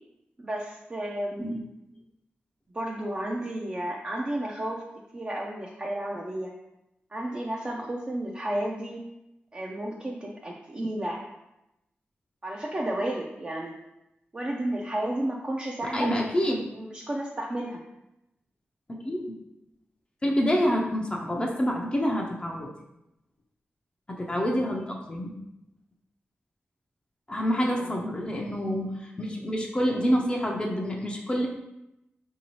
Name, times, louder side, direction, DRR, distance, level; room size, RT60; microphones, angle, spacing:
voice 1, 0.4-1.5 2.7-4.8 5.1-6.5 7.1-9.0 9.5-11.2 12.4-13.7 14.3-16.1 16.7-17.8 27.5-27.9, right 1 dB, 30° right, -1 dB, 0.4 m, -32 dB
voice 2, 15.9-16.7 18.9-19.4 20.2-22.7 24.1-25.3 27.3-31.5, equal, 25° left, -1 dB, 0.5 m, -27 dB
3.8 x 2.7 x 3.0 m, 0.89 s
wide cardioid pair, 85°, 4 cm